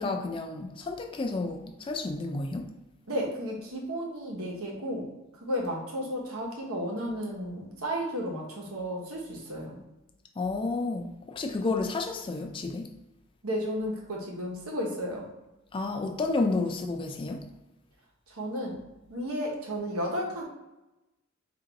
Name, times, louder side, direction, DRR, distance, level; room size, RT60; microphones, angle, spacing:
voice 1, 0.0-2.7 10.4-12.9 15.7-17.5, left 3 dB, 25° left, 0.3 m, -31 dB
voice 2, 3.1-5.1 5.4-9.8 13.4-15.3 18.3-18.8 19.1-20.4, equal, 90° right, 1.0 m, -33 dB
3.4 x 2.6 x 3.9 m
head